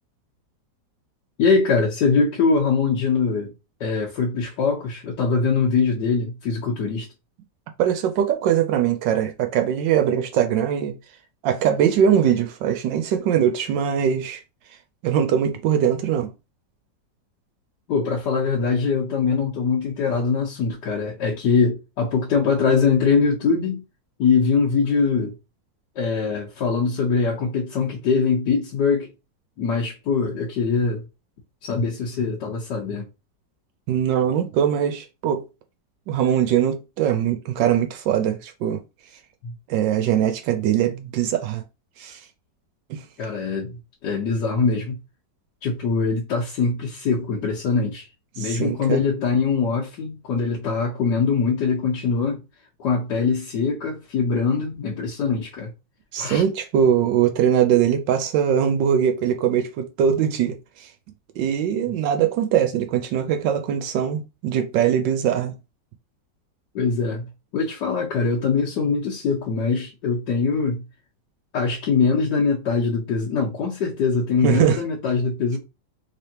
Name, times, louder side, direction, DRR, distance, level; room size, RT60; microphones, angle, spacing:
voice 1, 1.4-3.5 3.8-7.1 17.9-23.8 24.2-25.3 26.0-29.1 29.6-31.0 31.6-33.1 39.4-39.5 43.2-43.8 44.0-44.9 45.6-48.1 48.4-52.4 52.8-55.7 56.2-56.4 66.7-67.3 67.5-70.8 71.5-75.6, left 5 dB, 70° left, 1.5 m, -22 dB
voice 2, 7.8-11.0 11.4-14.4 15.0-16.3 33.9-35.4 36.1-38.8 39.7-41.6 42.0-42.2 42.9-43.0 48.4-49.0 56.1-60.9 61.4-65.5 74.4-74.8, right 9 dB, 85° right, 1.3 m, -21 dB
3.5 x 3.3 x 2.8 m
omnidirectional pair, 2.0 m